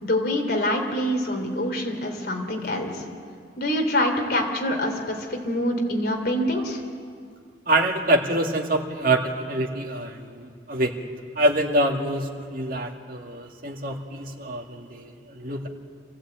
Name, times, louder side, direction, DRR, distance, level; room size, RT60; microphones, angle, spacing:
voice 1, 0.0-3.0 3.6-6.8, left 1 dB, 60° left, 2 dB, 3.2 m, -25 dB
voice 2, 7.7-10.9 11.4-15.7, right 1 dB, 50° right, 1 dB, 2.0 m, -25 dB
26.5 x 15.5 x 8.8 m, 2.2 s
head